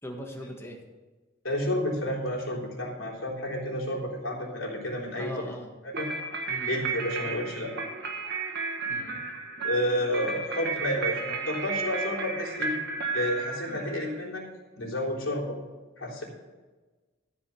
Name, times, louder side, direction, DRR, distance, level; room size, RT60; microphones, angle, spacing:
voice 1, 0.0-0.8 5.2-5.7 6.5-6.7 8.8-9.2, left 1 dB, 15° left, 1 dB, 1.6 m, -40 dB
voice 2, 1.4-5.5 5.8-6.1 6.7-7.7 9.6-12.8 13.1-14.4 14.8-15.6 16.0-16.2, left 1 dB, 80° left, -3 dB, 3.5 m, -30 dB
sound 1, 5.9-14.2, right 4 dB, 55° right, 1.5 m, -33 dB
14.0 x 5.2 x 7.0 m, 1.2 s
head